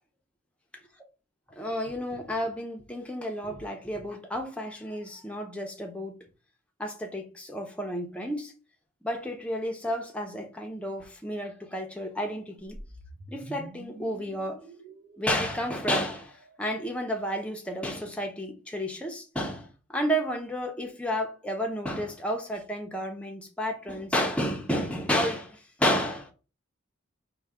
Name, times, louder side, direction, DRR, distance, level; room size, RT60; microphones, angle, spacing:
voice 1, 1.6-6.1 6.8-8.5 9.0-12.8 13.3-14.6 15.2-26.3, equal, 5° left, 0.6 m, -31 dB
sound 1, 12.7-16.9, right 1 dB, 50° right, 0.7 m, -47 dB
4.4 x 2.2 x 3.6 m
head